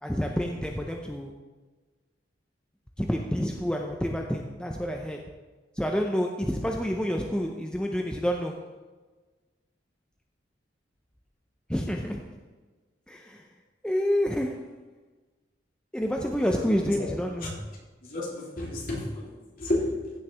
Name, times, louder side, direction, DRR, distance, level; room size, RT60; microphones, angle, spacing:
voice 1, 0.0-1.3 3.0-5.3 5.8-8.7 11.7-12.4 13.1-13.5 13.8-14.8 15.9-17.6, equal, 5° left, 2 dB, 0.5 m, -28 dB
voice 2, 18.0-20.1, left 1 dB, 50° left, -5 dB, 3.1 m, -32 dB
15.0 x 6.5 x 3.4 m, 1.3 s
head